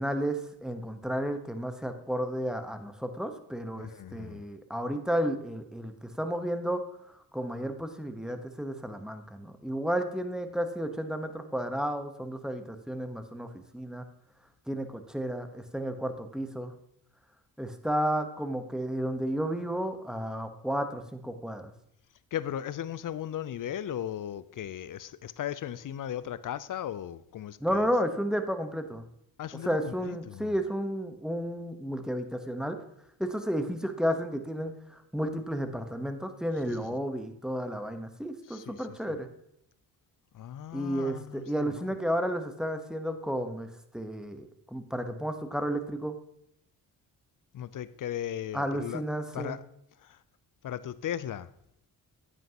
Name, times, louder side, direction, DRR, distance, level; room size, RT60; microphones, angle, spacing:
voice 1, 0.0-6.8 7.3-14.0 14.7-16.7 17.6-21.7 27.6-29.0 29.5-32.8 33.2-34.7 35.1-39.3 40.7-46.1 48.5-49.6, equal, ahead, 1.0 m, -32 dB
voice 2, 3.8-4.4 22.3-27.8 29.4-30.5 36.7-36.8 38.5-38.8 40.3-41.9 47.5-49.0 49.3-49.6 50.6-51.5, left 10 dB, 45° left, 0.5 m, -37 dB
9.0 x 8.1 x 2.9 m
supercardioid pair, 45°, 45 cm